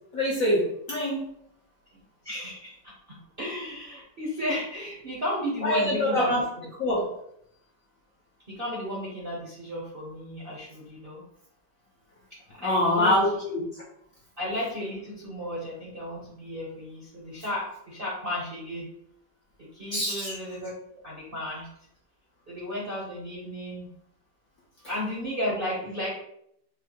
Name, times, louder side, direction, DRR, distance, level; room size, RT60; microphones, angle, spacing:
voice 1, 0.1-1.2 5.6-6.4 6.8-7.1 12.6-13.8 19.9-20.3, left 1 dB, 65° left, -3 dB, 0.9 m, -25 dB
voice 2, 1.9-6.3 8.5-11.2 12.6-13.1 14.4-18.9 19.6-20.7 21.0-21.7 22.5-23.9 24.9-26.1, left 1 dB, 50° right, -5 dB, 0.6 m, -34 dB
5.4 x 2.1 x 2.9 m, 0.72 s
omnidirectional pair, 2.1 m